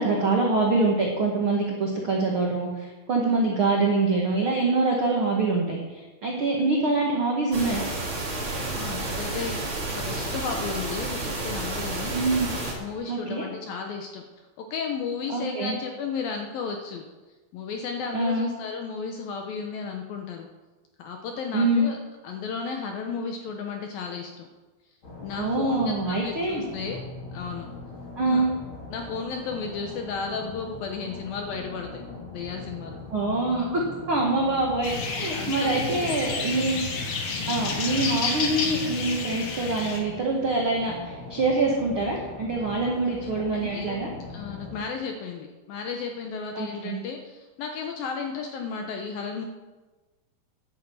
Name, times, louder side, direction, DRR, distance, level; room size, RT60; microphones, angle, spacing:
voice 1, 0.0-5.8 6.2-7.9 12.1-12.5 13.1-13.4 15.3-15.8 18.1-18.5 21.5-21.9 25.4-26.6 28.2-28.5 33.1-33.8 34.1-36.8 37.5-44.1 46.5-47.0, right 3 dB, 75° right, -1 dB, 1.2 m, -25 dB
sound 1, 7.5-12.7, right 2 dB, 35° right, 2.5 m, -31 dB
voice 2, 8.8-12.2 12.8-14.2 14.6-17.0 17.5-20.5 21.0-22.0 22.2-24.5 25.2-27.0 27.3-27.7 28.3-28.5 28.9-32.0 32.3-33.0 35.3-36.1 43.5-44.0 44.3-49.5, left 5 dB, 75° left, 3 dB, 2.2 m, -34 dB
sound 2, 25.0-44.8, left 3 dB, 30° left, 2.9 m, -41 dB
sound 3, 34.8-40.0, left 4 dB, 55° left, 2.3 m, -30 dB
10.5 x 9.2 x 7.9 m, 1.2 s
omnidirectional pair, 5.3 m